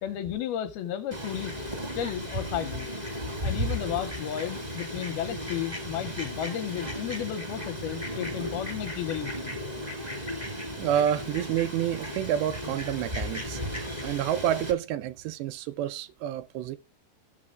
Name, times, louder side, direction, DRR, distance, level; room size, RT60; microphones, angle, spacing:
voice 1, 0.0-1.6 2.0-2.9 3.4-9.6, left 11 dB, 85° left, 2.2 m, -33 dB
Fowl, 1.1-14.7, equal, 45° right, 0.5 m, -35 dB
voice 2, 10.8-13.6 14.0-16.8, right 10 dB, 80° right, 2.8 m, -28 dB
16.5 x 6.5 x 2.4 m
omnidirectional pair, 4.9 m